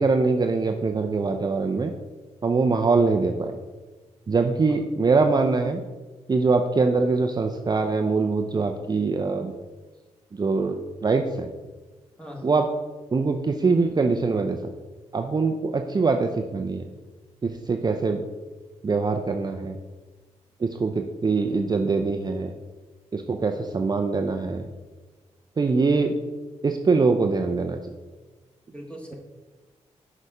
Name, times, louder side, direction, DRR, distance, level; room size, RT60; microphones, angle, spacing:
voice 1, 0.0-1.9 2.4-3.6 4.3-5.8 6.3-9.5 10.3-11.5 12.4-12.7 13.1-14.6 15.1-16.8 17.4-18.2 18.8-19.8 20.6-22.5 23.1-24.6 25.6-26.1 26.6-27.8, right 4 dB, 35° right, 5 dB, 0.5 m, -23 dB
voice 2, 12.2-12.5 25.6-26.0 28.7-29.1, equal, 10° left, -1 dB, 1.9 m, -40 dB
6.3 x 5.0 x 5.5 m, 1.3 s
cardioid pair, 75°, 13 cm